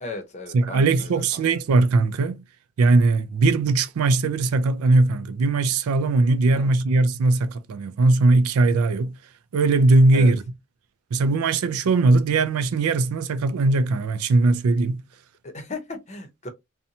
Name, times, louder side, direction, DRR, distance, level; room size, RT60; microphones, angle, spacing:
voice 1, 0.0-1.4 6.5-6.7 10.1-10.3 15.4-16.5, left 2 dB, 35° left, 0.7 m, -36 dB
voice 2, 0.5-2.4 2.8-9.2 9.5-10.4 11.1-15.0, right 3 dB, 85° right, 0.4 m, -20 dB
2.6 x 2.2 x 2.7 m
head